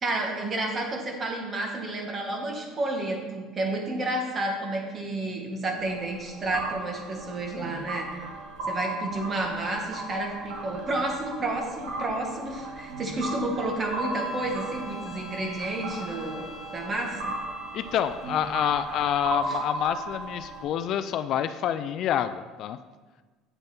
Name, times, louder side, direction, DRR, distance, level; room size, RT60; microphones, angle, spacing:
voice 1, 0.0-8.2 8.6-16.5 16.7-17.3 19.5-19.6, right 2 dB, 25° right, 1 dB, 1.6 m, -31 dB
sound 1, 5.8-20.6, right 2 dB, 70° right, 2.2 m, -36 dB
Bowed string instrument, 13.6-18.5, left 3 dB, 35° left, 1.0 m, -45 dB
voice 2, 17.7-22.8, left 9 dB, 50° left, 11 dB, 0.3 m, -27 dB
8.1 x 7.0 x 4.3 m, 1.3 s
cardioid pair, 140°, 0 cm